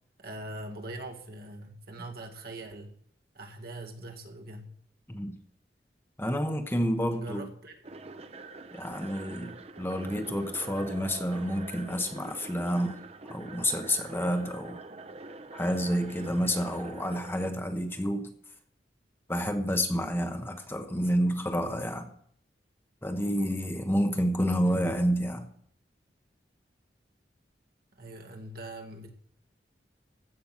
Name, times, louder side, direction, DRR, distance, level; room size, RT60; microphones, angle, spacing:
voice 1, 0.2-2.9 3.3-4.8 7.1-7.8 16.2-16.5 24.6-24.9 27.9-29.1, right 1 dB, 60° right, 1.9 m, -42 dB
voice 2, 6.2-7.5 8.7-13.0 13.3-14.8 15.5-18.3 19.3-22.1 23.0-25.5, equal, 15° left, 1.1 m, -29 dB
sound 1, 7.8-17.5, right 3 dB, 35° right, 0.6 m, -45 dB
15.5 x 6.2 x 7.3 m
head